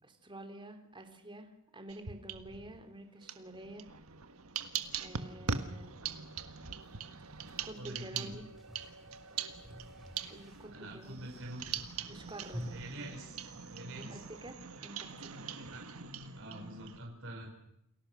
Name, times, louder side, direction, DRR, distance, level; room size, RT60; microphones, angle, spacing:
voice 1, 0.0-3.9 5.0-6.0 7.6-8.5 10.3-11.3 12.1-13.4 13.9-15.4, right 1 dB, 25° right, 6 dB, 3.2 m, -49 dB
sound 1, 1.9-2.8 3.2-17.0, right 6 dB, 80° right, 1.6 m, -42 dB
sound 2, 4.9-14.5, equal, ahead, 3.8 m, -52 dB
voice 2, 7.8-8.3 10.6-11.8 12.7-13.3 13.7-14.2 15.7-15.9 16.4-17.5, right 1 dB, 65° right, 0 dB, 5.3 m, -45 dB
29.0 x 20.5 x 6.3 m, 0.77 s
head